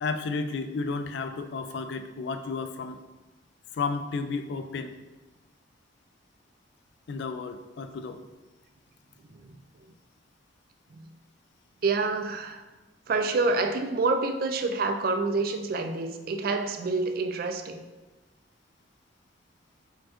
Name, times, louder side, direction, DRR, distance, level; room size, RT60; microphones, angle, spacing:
voice 1, 0.0-3.0 3.7-5.0 7.1-8.2, left 4 dB, 60° left, 9 dB, 0.3 m, -32 dB
voice 2, 11.8-12.6 13.1-17.8, right 3 dB, 45° right, 6 dB, 0.3 m, -27 dB
4.4 x 4.2 x 2.5 m, 1.2 s
head